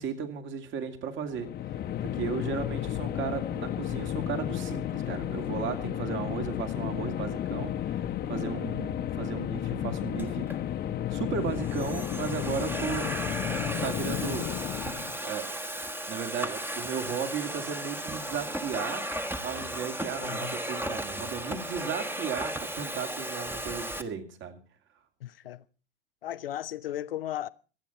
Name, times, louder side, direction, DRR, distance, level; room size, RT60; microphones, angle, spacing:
voice 1, 0.0-1.5 2.0-10.4 11.1-13.1 13.8-14.8 15.2-15.5 15.8-19.0 19.4-24.6, right 7 dB, 40° right, 2.6 m, -35 dB
sound 1, 1.3-15.2, left 11 dB, 35° left, 1.1 m, -32 dB
voice 2, 8.7-9.1 20.2-20.6 25.2-25.6 26.2-27.5, left 12 dB, 75° left, 0.8 m, -37 dB
Domestic sounds home sounds, 10.2-10.6 11.3-24.0, right 1 dB, 5° right, 1.4 m, -35 dB
26.0 x 8.9 x 4.2 m
figure-of-eight pair, 85°, 29 cm